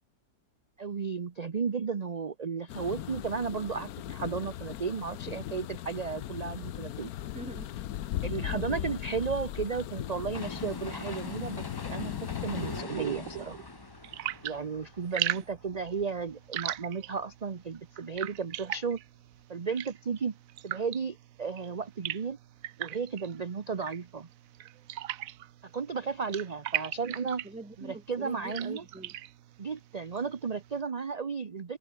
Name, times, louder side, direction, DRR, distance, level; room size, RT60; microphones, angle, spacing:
voice 1, 0.8-7.1 8.2-13.6 14.4-19.0 19.5-20.4 20.6-22.4 22.8-24.3 25.6-27.5 27.8-28.8 29.6-31.8, right 5 dB, 35° right, 0.7 m, -34 dB
sound 1, 2.7-12.8, left 12 dB, 70° left, 1.2 m, -38 dB
voice 2, 7.3-7.8 8.5-8.9 27.4-29.2, right 2 dB, 5° right, 0.9 m, -44 dB
sound 2, 10.3-16.3 16.7-16.8, left 4 dB, 40° left, 0.3 m, -42 dB
sound 3, 12.6-30.8, right 12 dB, 65° right, 1.0 m, -40 dB
omnidirectional pair, 1.7 m